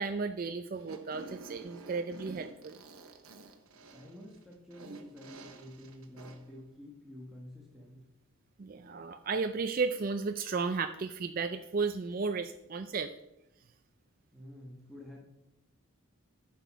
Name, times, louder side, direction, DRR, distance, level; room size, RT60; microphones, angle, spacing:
voice 1, 0.0-2.8 8.6-13.1, right 4 dB, 40° right, 7 dB, 0.4 m, -34 dB
Fart, 0.7-6.5, right 2 dB, 85° right, 1.1 m, -50 dB
voice 2, 3.9-8.1 14.3-15.2, left 1 dB, ahead, -3 dB, 1.2 m, -49 dB
10.5 x 6.0 x 4.6 m, 0.88 s
head